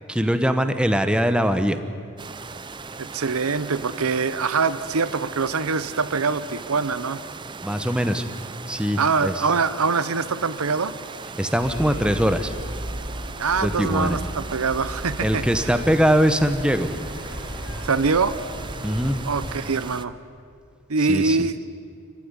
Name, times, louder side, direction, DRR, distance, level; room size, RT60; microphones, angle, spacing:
voice 1, 0.1-1.8 7.6-8.2 8.7-9.3 11.4-12.5 13.6-14.2 15.2-16.9 18.8-19.2 21.1-21.5, equal, 5° right, 9 dB, 0.9 m, -22 dB
sound 1, 2.2-20.1, right 4 dB, 20° right, 0.6 m, -38 dB
voice 2, 3.0-7.2 9.0-10.9 13.4-15.7 17.8-18.4 19.2-20.1 20.9-21.6, right 4 dB, 75° right, 14 dB, 0.8 m, -24 dB
sound 2, 11.6-19.5, equal, 75° left, 5.4 m, -35 dB
26.5 x 15.0 x 9.8 m, 2.3 s
head